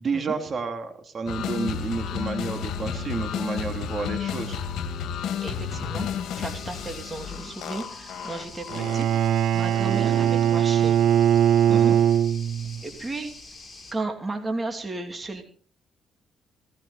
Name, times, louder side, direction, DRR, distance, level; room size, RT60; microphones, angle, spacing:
voice 1, 0.0-4.6 11.7-12.0, right 4 dB, 45° right, 5 dB, 2.9 m, -30 dB
sound 1, 1.3-9.3, left 8 dB, 80° left, 2.1 m, -32 dB
voice 2, 5.4-6.1 6.4-9.1 9.5-11.0 12.8-13.3 13.9-15.4, right 2 dB, 25° right, 4 dB, 2.9 m, -34 dB
sound 2, 6.4-13.9, left 3 dB, 25° left, 6.5 m, -45 dB
Bowed string instrument, 8.7-12.8, right 10 dB, 75° right, 0.6 m, -21 dB
18.0 x 16.0 x 4.2 m, 0.43 s
cardioid pair, 90°, 0 cm